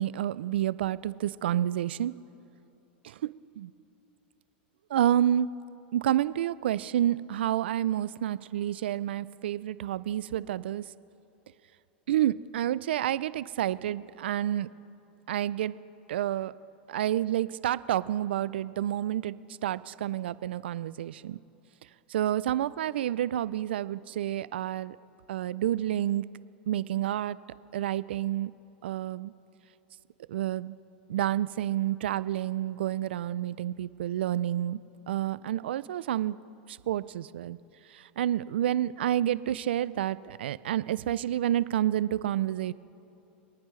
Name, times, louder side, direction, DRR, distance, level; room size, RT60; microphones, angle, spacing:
voice 1, 0.0-2.1 3.0-3.3 3.6-3.7 4.9-5.5 5.9-10.8 12.1-14.7 15.3-15.8 16.1-16.5 16.9-19.4 19.6-21.4 22.1-25.0 25.3-26.2 26.7-27.4 27.7-28.5 28.8-29.3 30.3-30.7 31.1-34.8 35.1-36.4 36.7-37.6 37.9-42.7, right 11 dB, 80° right, 18 dB, 0.4 m, -29 dB
27.5 x 9.5 x 3.2 m, 2.9 s
hypercardioid pair, 110°, 6 cm